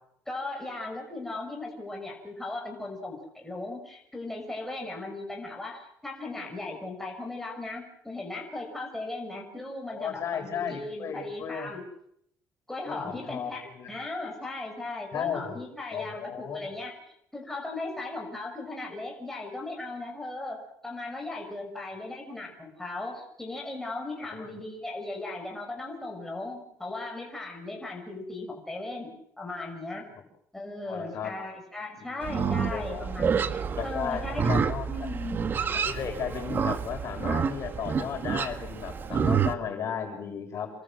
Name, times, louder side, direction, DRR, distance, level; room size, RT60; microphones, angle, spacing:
voice 1, 0.3-11.8 12.7-17.0 17.3-30.0 30.5-34.5 34.9-35.4, left 2 dB, 5° left, 0 dB, 6.4 m, -37 dB
voice 2, 9.9-11.7 12.9-13.9 15.1-15.5 15.9-16.7 24.3-24.5 30.8-31.3 32.0-33.0 33.8-34.9 35.8-40.7, left 7 dB, 50° left, 5 dB, 7.0 m, -35 dB
Livestock farm animals working animals, 32.2-39.5, right 6 dB, 35° right, 1.7 m, -28 dB
28.5 x 23.5 x 7.9 m, 0.73 s
cardioid pair, 150°, 6 cm